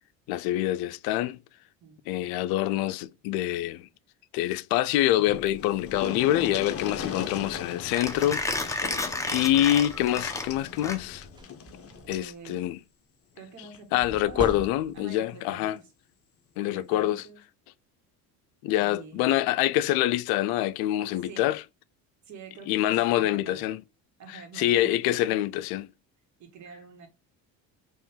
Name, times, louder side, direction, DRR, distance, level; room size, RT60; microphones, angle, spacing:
voice 1, 0.3-1.4 2.1-3.9 4.3-8.9 9.3-11.3 12.1-12.8 13.9-15.8 16.6-17.2 18.6-21.6 22.7-23.8 24.3-25.9, left 13 dB, 75° left, 0.5 m, -26 dB
sound 1, 5.2-5.3 5.5-12.3 13.6-13.8 14.2-14.3, left 7 dB, 40° left, 0.9 m, -39 dB
Mechanisms, 5.3-11.4, left 2 dB, 10° left, 0.8 m, -33 dB
sound 2, 11.3-12.3 14.0-15.2, right 3 dB, 15° right, 0.3 m, -39 dB
voice 2, 12.1-12.7 13.3-15.9 16.6-17.4 18.8-19.3 21.2-21.5 22.3-23.6 24.2-25.5 26.4-27.1, right 5 dB, 50° right, 1.8 m, -47 dB
4.4 x 3.0 x 3.6 m
supercardioid pair, 100°, 37 cm